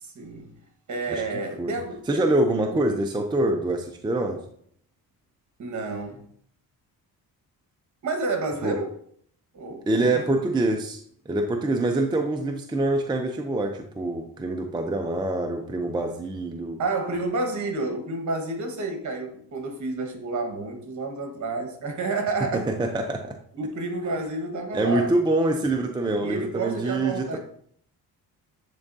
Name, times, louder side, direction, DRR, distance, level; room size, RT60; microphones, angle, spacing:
voice 1, 0.0-0.5 0.9-2.8 5.6-6.2 8.0-8.9 9.5-9.9 16.8-22.7 23.5-25.1 26.2-27.4, right 3 dB, 45° right, 4 dB, 1.5 m, -30 dB
voice 2, 2.1-4.4 8.6-8.8 9.9-11.0 11.3-16.8 22.5-23.4 24.7-27.4, right 2 dB, 10° right, 3 dB, 0.5 m, -25 dB
10.5 x 3.6 x 2.7 m, 0.63 s
cardioid pair, 105°, 39 cm